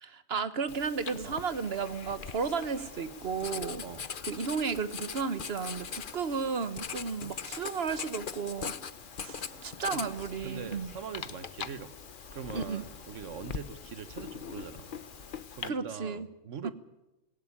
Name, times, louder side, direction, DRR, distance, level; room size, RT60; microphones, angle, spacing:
voice 1, 0.0-3.8 4.3-8.7 9.2-10.9 12.5-12.8 15.6-16.3 16.6-16.7, right 5 dB, 55° right, 13 dB, 1.4 m, -33 dB
Writing, 0.7-15.7, left 6 dB, 45° left, 1.0 m, -42 dB
sound 1, 1.6-15.4, left 3 dB, 85° left, 2.6 m, -55 dB
voice 2, 10.4-11.9 12.3-14.9 15.5-16.7, right 7 dB, 75° right, 13 dB, 1.5 m, -42 dB
18.5 x 17.5 x 9.8 m, 1.0 s
omnidirectional pair, 1.3 m